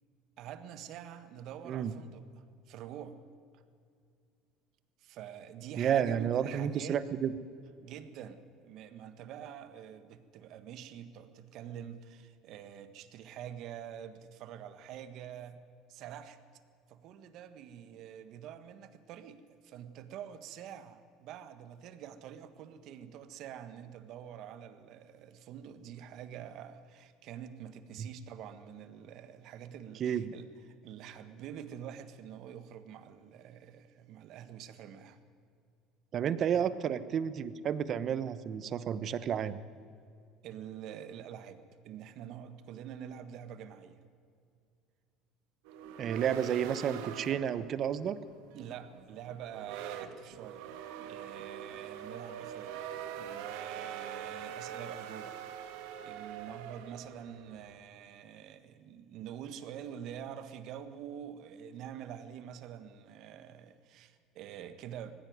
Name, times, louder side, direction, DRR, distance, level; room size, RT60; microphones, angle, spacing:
voice 1, 0.4-3.2 3.5-3.6 5.0-7.1 7.8-16.4 16.9-30.5 30.8-35.2 36.5-36.7 40.4-44.0 48.5-50.6 51.1-52.8 53.1-55.4 56.0-65.1, right 9 dB, 60° right, 10 dB, 1.6 m, -46 dB
voice 2, 5.8-7.3 28.0-28.1 30.0-30.3 36.1-39.6 46.0-48.2, right 8 dB, 45° right, 14 dB, 1.1 m, -31 dB
sound 1, 45.7-57.8, right 9 dB, 80° right, 1.8 m, -44 dB
19.0 x 15.5 x 9.5 m, 2.3 s
supercardioid pair, 105°, 0 cm